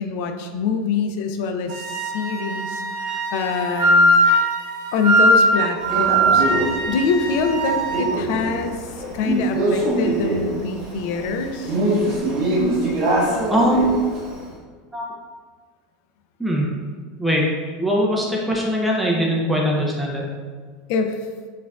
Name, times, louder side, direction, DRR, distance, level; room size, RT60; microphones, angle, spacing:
voice 1, 0.0-4.1 4.9-8.8 9.1-11.7 20.9-21.2, left 5 dB, 60° left, 6 dB, 0.3 m, -25 dB
Wind instrument woodwind instrument, 1.7-8.1, right 1 dB, 85° right, 0.6 m, -20 dB
Male speech man speaking, 5.9-14.4, right 1 dB, 50° right, 1.4 m, -24 dB
voice 2, 13.5-14.0 14.9-15.1 16.4-16.7 17.2-17.5 17.8-20.2, equal, ahead, -3 dB, 0.4 m, -21 dB
4.3 x 2.4 x 2.3 m, 1.5 s
supercardioid pair, 150°, 0 cm